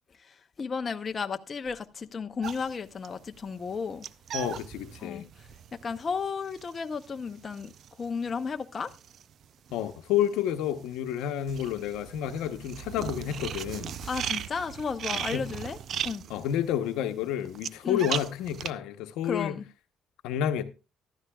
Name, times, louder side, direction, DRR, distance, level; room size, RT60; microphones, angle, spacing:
voice 1, 0.2-4.0 5.0-5.5 5.8-8.9 14.0-15.8 16.0-16.2 17.8-18.1 19.2-19.7, left 5 dB, 35° left, 0.7 m, -34 dB
sound 1, 2.4-9.9 10.2-18.7, right 9 dB, 60° right, 0.5 m, -38 dB
voice 2, 4.3-5.3 9.7-14.0 15.1-15.5 16.3-19.5 20.2-20.6, left 10 dB, 85° left, 0.9 m, -30 dB
14.5 x 12.5 x 2.3 m
cardioid pair, 95°, 0 cm